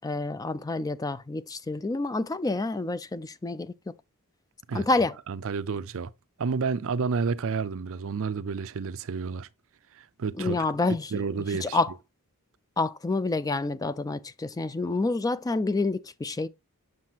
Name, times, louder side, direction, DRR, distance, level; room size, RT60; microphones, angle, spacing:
voice 1, 0.0-3.7 4.7-5.2 10.4-11.2 11.6-11.9 12.8-16.5, left 3 dB, 15° left, 0.4 m, -28 dB
voice 2, 5.3-6.1 6.4-9.5 9.9-10.6 11.1-11.8, right 5 dB, 65° right, 0.5 m, -30 dB
7.5 x 6.3 x 2.8 m
head